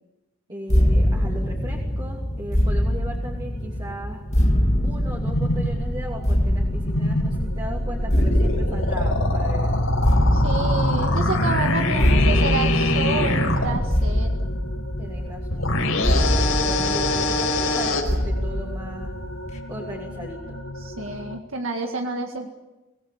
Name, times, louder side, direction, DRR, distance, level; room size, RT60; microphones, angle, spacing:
voice 1, 0.5-4.2 4.8-9.8 15.0-19.1 19.7-20.6, right 1 dB, 20° right, -2 dB, 2.9 m, -37 dB
sound 1, 0.7-19.6, equal, 35° left, 2.5 m, -24 dB
sound 2, 3.5-21.4, left 1 dB, 70° left, 1.8 m, -39 dB
sound 3, 4.6-13.9 15.5-18.0, left 1 dB, 85° left, 5.1 m, -24 dB
voice 2, 10.3-14.3 20.8-22.5, right 3 dB, 75° right, 3 dB, 1.9 m, -29 dB
25.5 x 18.5 x 8.7 m, 1.0 s
head